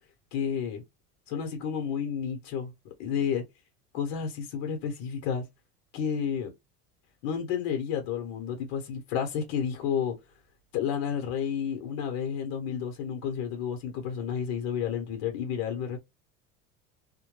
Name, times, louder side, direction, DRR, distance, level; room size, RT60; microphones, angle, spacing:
voice 1, 0.3-0.8 1.3-2.7 3.0-3.4 3.9-5.4 5.9-6.5 7.2-10.1 10.7-16.0, left 7 dB, 60° left, 0.9 m, -31 dB
2.2 x 2.2 x 3.1 m
cardioid pair, 145°, 30 cm